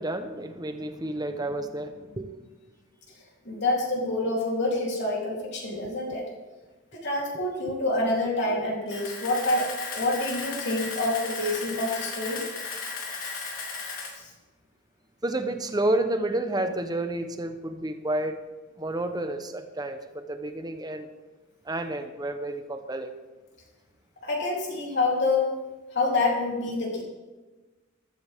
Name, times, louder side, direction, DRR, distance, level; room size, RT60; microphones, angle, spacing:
voice 1, 0.0-2.4 15.2-18.4 18.8-21.1 21.6-23.1, right 1 dB, 20° right, 8 dB, 1.0 m, -30 dB
voice 2, 3.5-6.3 6.9-12.4 14.2-14.3 24.2-25.5 25.9-27.0, left 2 dB, 60° left, -2 dB, 3.7 m, -27 dB
Camera, 8.9-14.1, left 4 dB, 85° left, 3.5 m, -35 dB
14.5 x 13.5 x 3.7 m, 1.2 s
head